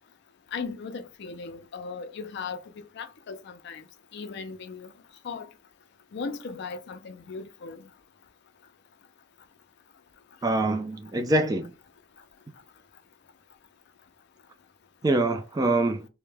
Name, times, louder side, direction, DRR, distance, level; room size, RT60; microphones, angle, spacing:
voice 1, 0.5-3.8 4.1-4.9 5.2-5.5 6.1-7.8, left 5 dB, 55° left, 0.4 m, -37 dB
voice 2, 10.4-11.7 15.0-16.1, right 2 dB, 20° right, 0.3 m, -24 dB
2.1 x 2.1 x 3.2 m
head